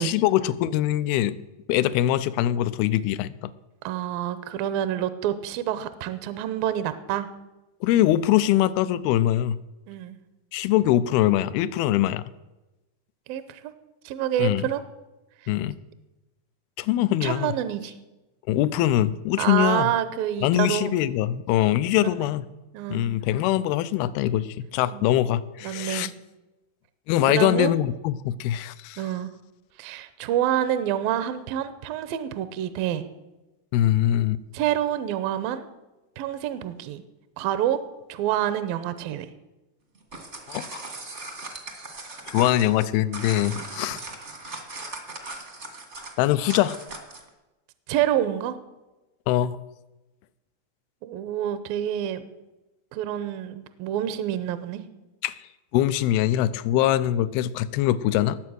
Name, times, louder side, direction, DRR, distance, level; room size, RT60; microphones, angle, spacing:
voice 1, 0.0-1.4 1.7-3.5 7.8-9.6 10.5-12.2 14.4-14.6 15.5-15.8 16.8-17.5 18.5-19.9 20.4-22.5 22.9-26.1 27.1-29.0 33.7-34.4 40.5-40.9 42.3-44.0 46.2-46.8 49.3-49.6 55.2-55.4 55.7-58.4, left 13 dB, 80° left, 16 dB, 2.3 m, -23 dB
voice 2, 3.8-7.3 9.9-10.2 13.3-13.7 14.0-14.8 17.2-17.9 19.4-21.0 22.2-22.3 22.7-23.1 24.9-25.1 25.6-26.1 27.3-27.7 29.0-29.3 29.8-33.1 34.5-35.7 36.2-37.0 37.4-37.8 38.1-39.3 43.7-43.9 47.9-48.6 51.0-52.3 52.9-54.8, right 11 dB, 75° right, 12 dB, 2.3 m, -27 dB
sound 1, 39.9-47.3, right 2 dB, 45° right, 0.9 m, -39 dB
19.0 x 7.8 x 6.3 m, 1.1 s
omnidirectional pair, 4.7 m